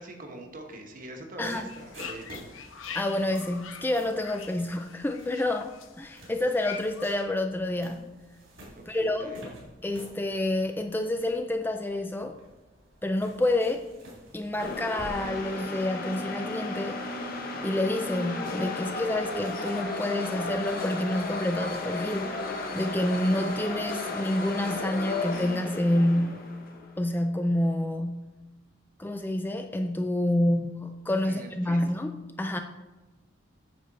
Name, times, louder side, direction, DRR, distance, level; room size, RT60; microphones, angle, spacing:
voice 1, 0.0-2.5 8.8-9.5 31.2-31.8, right 1 dB, 45° right, 3 dB, 1.2 m, -43 dB
sound 1, 1.4-15.1, right 1 dB, 85° right, 3.2 m, -51 dB
sound 2, 1.5-7.1, left 7 dB, 85° left, 0.8 m, -44 dB
voice 2, 2.9-5.7 6.0-8.1 8.9-9.4 9.8-12.4 13.0-13.9 14.3-17.0 17.6-22.3 22.7-26.6 27.0-28.3 29.0-32.6, left 1 dB, 10° left, 6 dB, 0.3 m, -28 dB
sound 3, 14.6-26.9, left 2 dB, 45° left, 1.3 m, -34 dB
8.6 x 6.7 x 4.1 m, 1.1 s
head